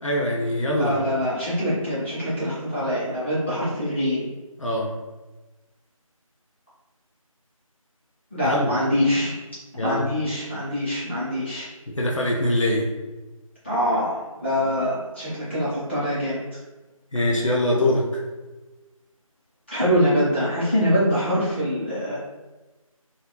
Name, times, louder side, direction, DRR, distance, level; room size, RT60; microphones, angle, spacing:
voice 1, 0.0-0.9 4.6-4.9 8.4-8.7 9.8-10.0 12.0-12.8 17.1-18.2, left 1 dB, 60° left, -3 dB, 0.5 m, -23 dB
voice 2, 0.7-4.3 8.3-9.4 9.8-11.7 13.6-16.4 19.7-22.2, equal, 20° left, -12 dB, 0.8 m, -24 dB
2.4 x 2.2 x 3.0 m, 1.2 s
figure-of-eight pair, 170°, 18 cm